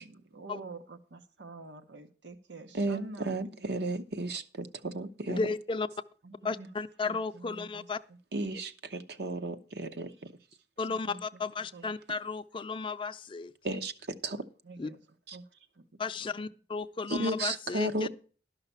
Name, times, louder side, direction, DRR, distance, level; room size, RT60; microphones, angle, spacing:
voice 1, 0.0-3.3 3.6-3.8 6.2-6.7 7.0-7.9 10.9-11.4 11.7-11.9 14.6-15.0 15.3-16.5, right 3 dB, 90° right, 1.0 m, -48 dB
voice 2, 2.7-5.5 8.3-10.3 13.6-14.4 15.3-15.4 17.1-18.1, right 2 dB, 65° right, 0.8 m, -34 dB
voice 3, 5.3-5.9 6.4-8.0 10.8-13.5 14.8-14.9 16.0-18.1, left 4 dB, 30° left, 0.4 m, -34 dB
12.0 x 5.7 x 6.8 m
head